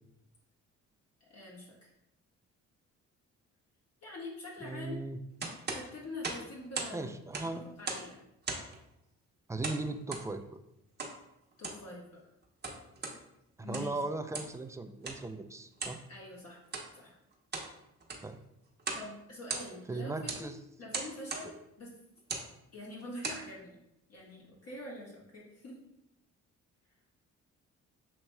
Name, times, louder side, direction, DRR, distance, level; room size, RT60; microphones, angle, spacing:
voice 1, 1.2-1.9 4.0-5.1 5.7-7.1 7.5-8.2 11.6-12.2 13.6-14.0 16.1-17.2 18.9-20.5 20.8-21.9 22.7-23.8 24.1-25.8, left 1 dB, 55° left, -5 dB, 1.3 m, -45 dB
voice 2, 4.6-5.2 6.9-7.6 9.5-10.4 13.6-16.0 18.2-18.4 19.9-20.6, right 2 dB, 10° right, 7 dB, 0.3 m, -38 dB
sound 1, 5.4-7.0 7.2-8.1 8.4-8.8 9.6-10.3 11.0-11.2 11.5-11.9 12.4-13.2 13.6-14.0 14.3-14.6 15.0-15.2 15.8-16.0 16.6-16.9 17.3-17.7 18.0-18.3 18.8-19.1 19.3-19.9 20.3-20.5 20.9-21.5 22.2-22.5 23.0-23.4, right 4 dB, 35° right, 0.9 m, -38 dB
6.3 x 2.9 x 2.2 m, 0.83 s
cardioid pair, 90°, 30 cm